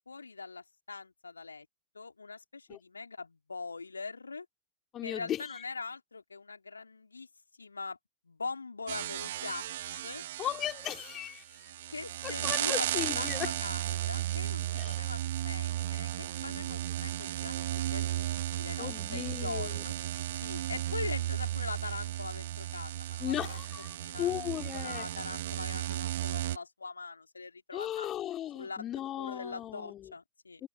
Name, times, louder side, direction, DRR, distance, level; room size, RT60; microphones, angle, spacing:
voice 1, 0.0-1.7 1.9-4.5 5.0-7.3 7.6-8.0 8.2-10.2 11.9-12.8 13.1-17.6 17.9-19.9 20.3-23.6 23.9-24.3 24.7-28.1 28.6-28.9 29.1-30.6, left 4 dB, 80° left, 2.9 m, -42 dB
voice 2, 4.9-5.6 10.4-11.7 12.2-13.5 14.8-15.0 18.8-19.9 23.2-25.1 27.7-30.1 30.6-30.7, left 12 dB, 30° left, 3.8 m, -37 dB
sound 1, 8.9-26.6, right 13 dB, 60° right, 1.9 m, -35 dB
figure-of-eight pair, 90°, 0 cm